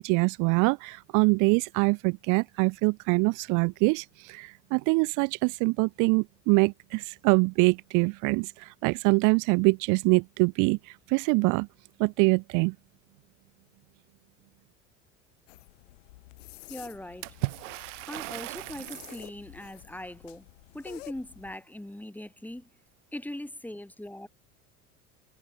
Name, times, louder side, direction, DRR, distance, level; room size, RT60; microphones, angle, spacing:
voice 1, 0.0-11.7 12.0-12.7, right 30 dB, 55° right, 0.5 m, -24 dB
sound 1, 15.5-21.6, left 19 dB, 75° left, 5.1 m, -50 dB
voice 2, 16.7-17.3 18.1-20.5 20.7-22.7 23.1-24.3, left 1 dB, 5° left, 4.3 m, -40 dB
Water / Splash splatter, 17.2-19.3, right 22 dB, 75° right, 2.0 m, -36 dB
hypercardioid pair, 85°, 37 cm